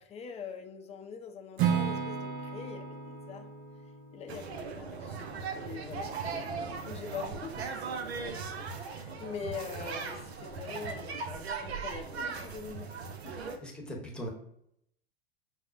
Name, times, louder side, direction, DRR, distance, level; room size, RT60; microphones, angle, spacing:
voice 1, 0.0-3.5 4.1-12.9 13.2-13.5, left 6 dB, 20° left, 4 dB, 0.5 m, -44 dB
Acoustic guitar / Strum, 1.6-5.6, right 7 dB, 40° right, 0.6 m, -34 dB
sound 1, 4.3-13.6, right 5 dB, 85° right, 0.5 m, -38 dB
voice 2, 13.6-14.3, equal, 5° left, -1 dB, 0.9 m, -39 dB
6.0 x 2.0 x 2.4 m, 0.74 s
hypercardioid pair, 90°, 31 cm